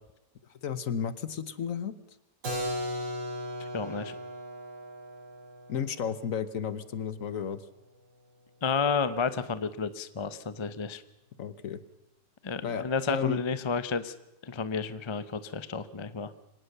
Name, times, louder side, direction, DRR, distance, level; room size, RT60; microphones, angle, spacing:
voice 1, 0.6-2.0 5.7-7.6 11.4-11.8 12.6-13.4, left 7 dB, 55° left, 15 dB, 1.2 m, -33 dB
Keyboard (musical), 2.4-8.1, equal, 75° right, 5.3 m, -38 dB
voice 2, 3.7-4.1 8.6-11.0 12.4-14.1 14.4-16.3, left 5 dB, 30° left, 13 dB, 0.5 m, -31 dB
24.5 x 18.0 x 6.7 m, 0.91 s
omnidirectional pair, 2.0 m